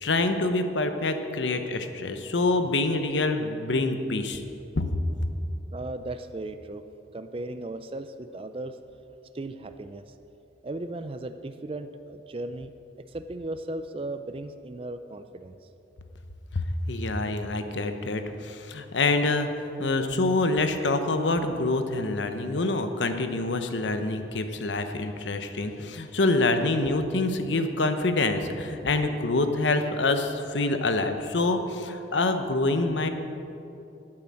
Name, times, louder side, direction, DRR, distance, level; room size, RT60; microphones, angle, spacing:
voice 1, 0.0-4.4 4.8-4.9 16.5-33.1, left 2 dB, 90° left, 8 dB, 0.9 m, -26 dB
voice 2, 5.7-6.8 7.1-8.8 9.3-10.1 10.6-12.7 13.1-15.6, right 2 dB, 30° right, 9 dB, 0.4 m, -36 dB
10.0 x 8.8 x 7.5 m, 2.8 s
head